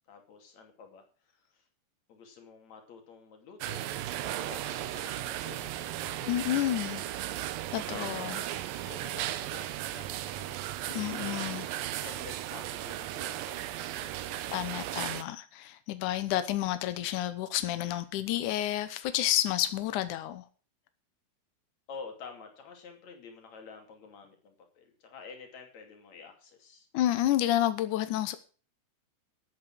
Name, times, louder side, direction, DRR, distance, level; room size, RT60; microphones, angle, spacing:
voice 1, 0.1-1.7 2.1-3.8 4.2-7.2 7.9-8.6 8.9-11.5 12.0-15.2 21.9-26.9, left 5 dB, 45° left, 3.5 m, -50 dB
sound 1, 3.6-15.2, right 13 dB, 75° right, 2.1 m, -36 dB
voice 2, 6.3-7.0 7.7-8.4 10.9-11.7 14.5-20.5 26.9-28.4, left 13 dB, 80° left, 1.7 m, -30 dB
13.5 x 8.5 x 6.1 m
omnidirectional pair, 4.9 m